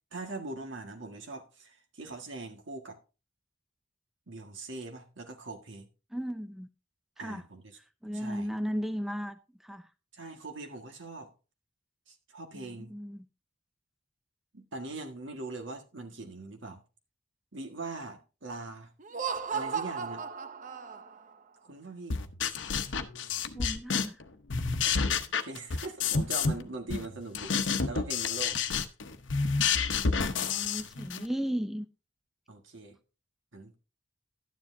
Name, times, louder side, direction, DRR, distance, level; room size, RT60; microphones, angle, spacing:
voice 1, 0.1-3.0 4.3-5.9 7.2-7.8 8.1-8.5 10.1-11.3 12.1-12.9 14.5-16.8 17.5-18.9 19.5-20.2 21.6-22.2 24.8-28.6 32.5-33.0 33.5-33.8, right 3 dB, 75° right, 1.7 m, -42 dB
voice 2, 6.1-6.7 7.2-7.4 8.0-9.9 12.5-13.3 23.6-24.2 30.2-31.9, equal, ahead, 0.4 m, -36 dB
Laughter, 19.0-21.3, right 6 dB, 40° right, 0.6 m, -35 dB
sound 1, 22.1-24.2 24.5-26.6 26.9-31.3, left 5 dB, 70° left, 0.9 m, -29 dB
12.0 x 9.8 x 2.7 m
head